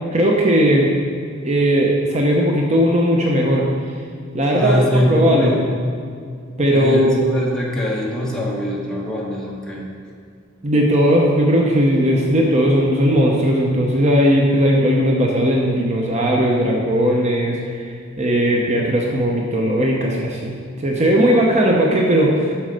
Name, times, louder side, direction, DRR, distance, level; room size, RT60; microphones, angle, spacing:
voice 1, 0.1-0.9 1.4-3.6 4.3-5.5 6.6-7.2 10.6-17.9 18.2-20.5 20.8-22.5, equal, 35° right, -1 dB, 0.7 m, -17 dB
voice 2, 4.5-5.7 6.7-9.8, equal, 5° left, -5 dB, 1.3 m, -22 dB
7.4 x 6.2 x 5.1 m, 2.2 s
head